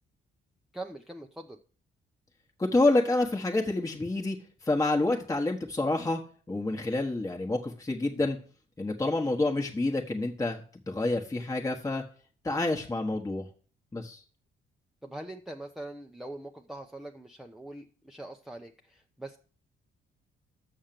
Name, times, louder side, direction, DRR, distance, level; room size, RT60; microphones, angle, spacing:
voice 1, 0.7-1.6 15.0-19.4, right 1 dB, ahead, 3 dB, 0.7 m, -42 dB
voice 2, 2.6-4.4 4.6-6.2 6.5-8.4 8.8-12.0 12.4-13.5 13.9-14.2, left 2 dB, 15° left, 1 dB, 1.2 m, -28 dB
6.5 x 6.5 x 7.5 m, 0.42 s
cardioid pair, 90°, 20 cm